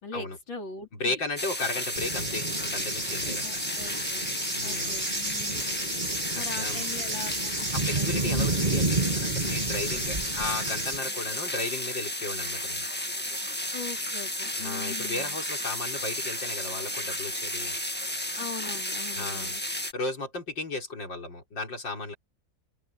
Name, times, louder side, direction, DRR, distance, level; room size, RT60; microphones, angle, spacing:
voice 1, 0.0-1.2 3.4-4.3 4.6-5.6 6.3-8.2 13.7-15.4 18.4-19.6, left 4 dB, 90° left, 5.1 m, -41 dB
voice 2, 1.0-3.6 4.6-5.0 6.3-6.9 7.7-12.9 14.6-17.8 19.1-19.5 19.9-22.1, left 2 dB, 75° left, 5.8 m, -35 dB
sound 1, 1.4-19.9, left 1 dB, 5° left, 1.5 m, -33 dB
Cricket / Thunder, 2.0-11.0, right 2 dB, 20° right, 2.6 m, -31 dB
open air
omnidirectional pair, 2.0 m